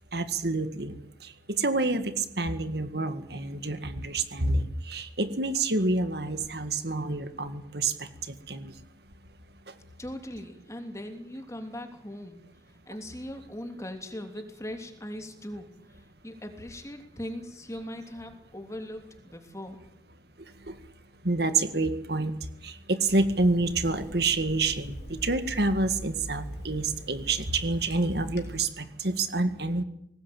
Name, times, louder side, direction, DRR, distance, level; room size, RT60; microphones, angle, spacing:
voice 1, 0.1-8.8 9.7-9.8 20.4-20.8 21.2-29.8, right 3 dB, 60° right, 10 dB, 2.0 m, -28 dB
voice 2, 10.0-12.4 12.9-19.8, left 1 dB, 15° left, 5 dB, 3.1 m, -40 dB
Water tap faucet / Sink (filling or washing), 23.1-28.6, equal, 65° left, 4.4 m, -42 dB
22.0 x 19.5 x 8.8 m, 0.75 s
head